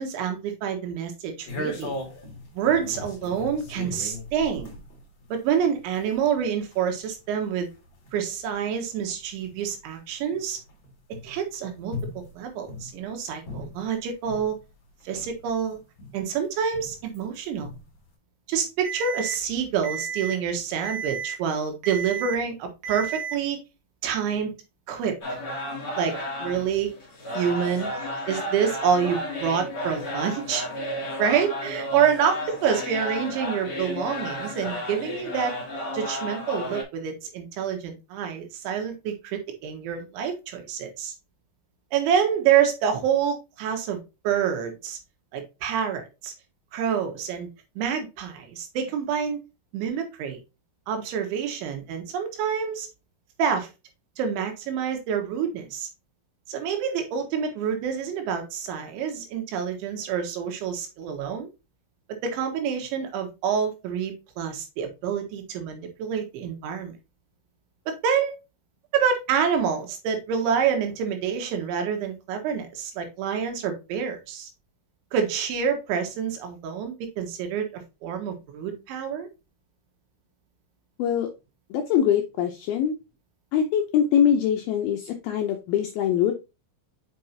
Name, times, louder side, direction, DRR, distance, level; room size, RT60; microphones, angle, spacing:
voice 1, 0.0-2.0 2.6-4.8 5.3-7.7 8.1-10.6 11.2-14.6 15.1-15.8 16.1-17.7 18.5-23.6 24.0-24.5 24.9-25.2 26.0-26.1 26.4-27.0 27.3-27.9 28.3-30.7 31.2-35.5 35.9-41.1 41.9-45.0 45.3-46.3 46.7-47.5 47.8-49.4 49.7-50.4 50.9-52.9 53.4-53.7 54.2-55.9 56.5-61.5 62.2-66.9 67.9-68.4 68.9-74.5 75.1-79.3, right 7 dB, 85° right, 4 dB, 3.8 m, -27 dB
sound 1, 1.5-14.6 15.0-17.2 17.6-18.1, left 1 dB, 60° left, 1.3 m, -39 dB
Alarm, 18.8-19.3 19.8-20.3 20.8-21.3 21.8-22.3 22.8-23.3, right 7 dB, 70° right, 3.9 m, -32 dB
sound 2, 25.2-36.8, left 1 dB, 30° left, 2.1 m, -33 dB
voice 2, 81.7-82.9 83.5-86.3, left 9 dB, 80° left, 4 dB, 2.2 m, -23 dB
7.4 x 5.4 x 2.7 m, 0.26 s
omnidirectional pair, 5.2 m